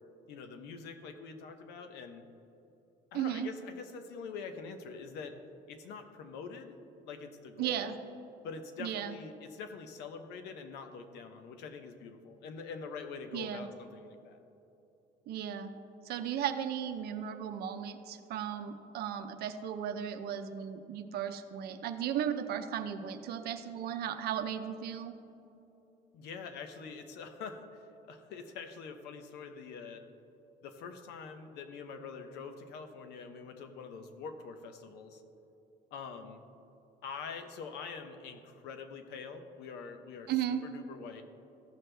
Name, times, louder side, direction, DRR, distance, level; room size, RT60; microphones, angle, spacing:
voice 1, 0.3-2.2 3.1-5.4 5.7-6.8 7.0-8.0 8.4-14.4 26.1-30.0 30.6-35.2 35.9-36.4 37.0-41.2, left 5 dB, 85° left, 7 dB, 0.9 m, -45 dB
voice 2, 3.1-3.5 7.6-8.0 8.8-9.1 13.3-13.7 15.3-15.7 16.0-25.1 40.3-40.6, right 9 dB, 70° right, 8 dB, 0.7 m, -35 dB
14.5 x 6.2 x 3.3 m, 2.9 s
cardioid pair, 110°, 17 cm